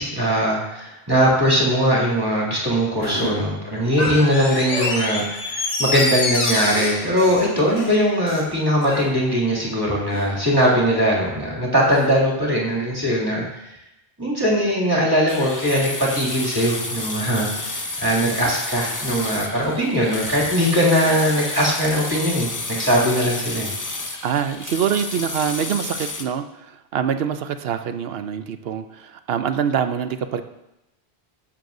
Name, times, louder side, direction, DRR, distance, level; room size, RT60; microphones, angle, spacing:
voice 1, 0.0-13.4 14.2-23.7, equal, 20° right, -5 dB, 2.5 m, -20 dB
sound 1, 3.0-3.3 4.0-4.2 4.7-5.0 5.9-6.1 6.7-6.9 7.6-7.9 8.9-9.1 10.1-10.3 11.9-12.1, left 2 dB, 85° left, 2.5 m, -29 dB
Door, 3.9-8.5 8.8-8.9, left 2 dB, 50° left, 1.2 m, -27 dB
voice 2, 7.2-7.5 24.2-30.4, right 8 dB, 70° right, 9 dB, 0.8 m, -25 dB
sound 2, 15.3-26.2, left 2 dB, 25° left, 0.5 m, -30 dB
14.0 x 7.2 x 2.6 m, 0.89 s
omnidirectional pair, 1.1 m